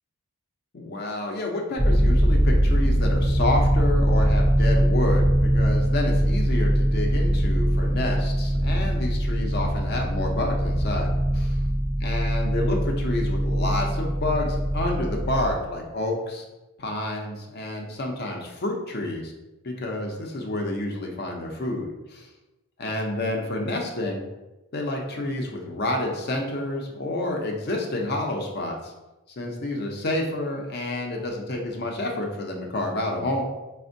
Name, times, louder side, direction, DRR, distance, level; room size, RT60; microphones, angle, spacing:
voice 1, 0.7-11.6 12.0-16.4 16.8-19.3 19.6-22.3 22.8-24.2 24.7-28.9 29.4-33.4, left 2 dB, 45° left, 1 dB, 0.5 m, -29 dB
sound 1, 1.8-15.5, equal, 5° right, 0.4 m, -22 dB
4.2 x 2.1 x 2.6 m, 1.0 s
head